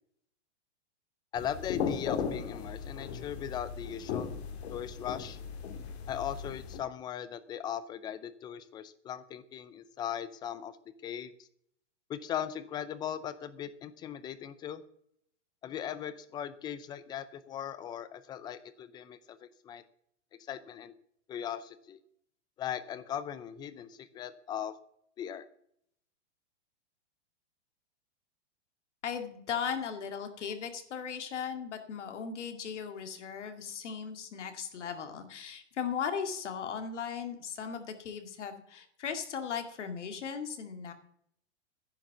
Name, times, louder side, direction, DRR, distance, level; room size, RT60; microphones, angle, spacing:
sound 1, 1.3-6.8, left 6 dB, 65° left, 2.1 m, -37 dB
voice 1, 1.3-4.4 4.7-5.4 6.1-10.8 11.0-11.3 12.1-14.8 15.6-19.8 20.5-20.9 21.3-22.0 22.6-24.8 25.2-25.5, left 9 dB, 10° left, 15 dB, 0.4 m, -39 dB
voice 2, 29.0-40.9, left 7 dB, 85° left, 6 dB, 2.3 m, -37 dB
10.5 x 7.4 x 8.0 m, 0.69 s
hypercardioid pair, 150°, 35 cm